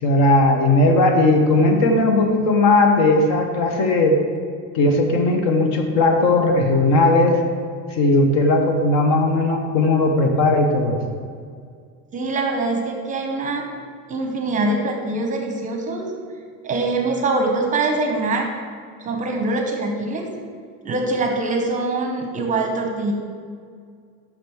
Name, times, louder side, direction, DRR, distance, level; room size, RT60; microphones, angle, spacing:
voice 1, 0.0-4.2 4.7-7.4 7.9-11.0, left 2 dB, 55° left, 4 dB, 1.1 m, -17 dB
voice 2, 12.1-13.6 14.1-16.1 16.6-18.5 19.0-20.3 20.8-23.1, right 2 dB, 25° right, 2 dB, 0.8 m, -23 dB
5.9 x 5.1 x 6.1 m, 2.1 s
cardioid pair, 160°, 33 cm